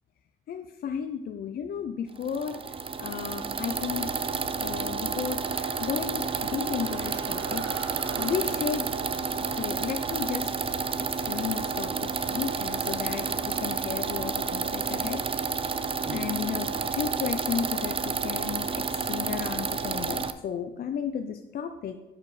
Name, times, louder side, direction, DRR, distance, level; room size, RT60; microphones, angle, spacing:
voice 1, 0.5-2.6 3.0-4.1 4.6-5.4 5.8-7.6 8.2-8.9 9.6-10.5 11.3-15.6 16.1-22.0, left 7 dB, 50° left, 7 dB, 0.4 m, -33 dB
sound 1, 2.2-20.3, right 5 dB, 25° right, 0.4 m, -30 dB
sound 2, 5.0-13.9, left 1 dB, 20° left, 1.3 m, -53 dB
sound 3, 5.7-12.4, right 6 dB, 70° right, 0.6 m, -44 dB
9.3 x 4.8 x 3.1 m, 1.0 s
cardioid pair, 90°, 20 cm